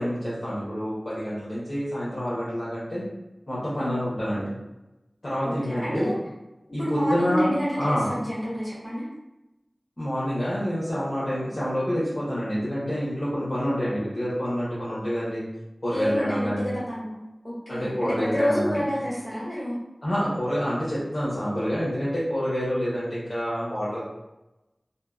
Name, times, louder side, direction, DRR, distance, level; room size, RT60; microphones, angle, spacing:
voice 1, 0.0-3.0 3.5-4.5 5.2-6.1 6.7-7.5 7.8-8.1 10.0-15.4 15.8-16.7 17.7-18.8 20.0-24.1, equal, 50° left, -11 dB, 0.9 m, -27 dB
voice 2, 5.4-6.2 6.8-9.1 15.9-19.8, equal, 30° left, -11 dB, 1.5 m, -28 dB
2.7 x 2.6 x 2.4 m, 0.98 s
wide cardioid pair, 45°, 0 cm